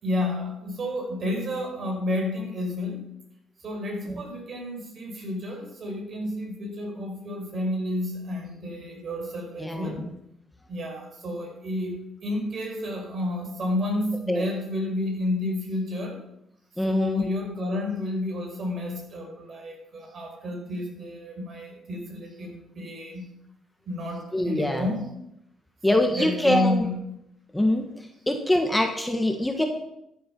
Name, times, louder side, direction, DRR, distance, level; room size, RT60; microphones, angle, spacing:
voice 1, 0.0-3.1 3.6-10.0 10.7-16.2 16.8-23.3 23.9-25.1 25.9-27.0, left 1 dB, 50° right, 0 dB, 5.7 m, -31 dB
voice 2, 9.6-10.0 14.3-14.5 16.8-17.3 24.3-24.9 25.8-26.9 27.5-27.9 28.3-29.6, left 1 dB, 10° left, 4 dB, 1.5 m, -24 dB
13.5 x 7.8 x 6.1 m, 0.81 s
cardioid pair, 90°, 0 cm